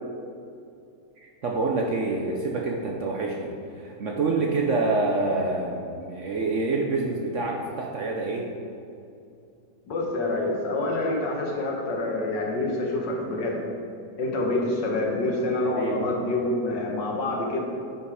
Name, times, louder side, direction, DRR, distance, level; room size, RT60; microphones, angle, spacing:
voice 1, 1.4-8.5 15.6-16.1, right 3 dB, 60° right, -1 dB, 0.8 m, -27 dB
voice 2, 9.9-13.6 14.2-17.6, left 2 dB, 75° left, 0 dB, 1.9 m, -27 dB
10.0 x 5.4 x 4.8 m, 2.5 s
omnidirectional pair, 1.9 m